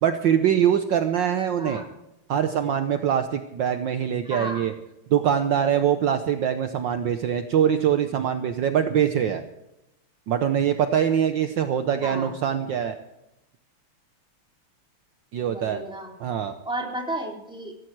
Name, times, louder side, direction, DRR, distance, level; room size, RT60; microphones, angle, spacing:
voice 1, 0.0-1.8 2.3-4.7 5.1-9.4 10.3-12.9 15.3-15.8 16.2-16.5, right 9 dB, 65° right, 8 dB, 1.4 m, -23 dB
voice 2, 4.2-4.6 12.0-12.3 15.4-16.1 16.6-17.7, right 1 dB, ahead, -1 dB, 3.2 m, -33 dB
16.5 x 15.0 x 4.7 m, 0.89 s
omnidirectional pair, 2.4 m